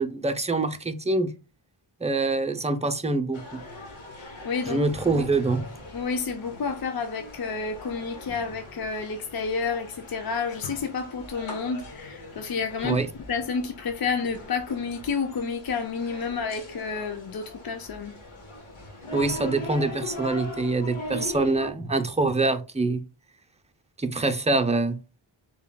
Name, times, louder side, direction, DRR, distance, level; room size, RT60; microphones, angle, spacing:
voice 1, 0.0-1.3 2.0-3.6 4.7-5.7 12.8-13.1 19.1-23.0 24.0-25.0, right 3 dB, 15° right, 0.5 m, -25 dB
sound 1, 3.3-21.7, left 1 dB, 80° left, 1.2 m, -40 dB
voice 2, 4.4-5.1 5.9-13.0 13.3-18.2 21.1-21.2, left 5 dB, 50° left, 0.5 m, -30 dB
6.8 x 2.3 x 2.2 m
wide cardioid pair, 70°, 47 cm